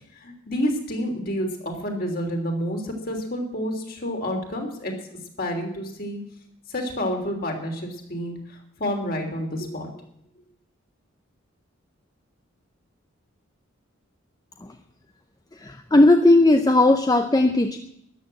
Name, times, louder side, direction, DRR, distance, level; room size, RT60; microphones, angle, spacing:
voice 1, 0.1-6.2 6.7-9.9, equal, 45° left, 3 dB, 3.3 m, -29 dB
voice 2, 15.6-17.8, left 2 dB, 20° left, 6 dB, 0.6 m, -17 dB
13.5 x 11.0 x 7.7 m, 0.74 s
head